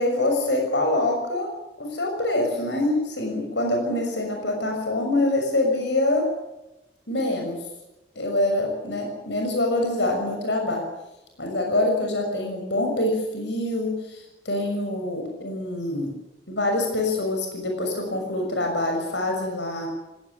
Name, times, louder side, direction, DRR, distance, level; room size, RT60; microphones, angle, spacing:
voice 1, 0.0-1.5 1.8-6.3 7.1-7.6 8.1-10.8 11.4-16.1 16.5-19.9, left 1 dB, 90° left, 2 dB, 6.5 m, -25 dB
18.5 x 18.0 x 9.8 m, 0.95 s
head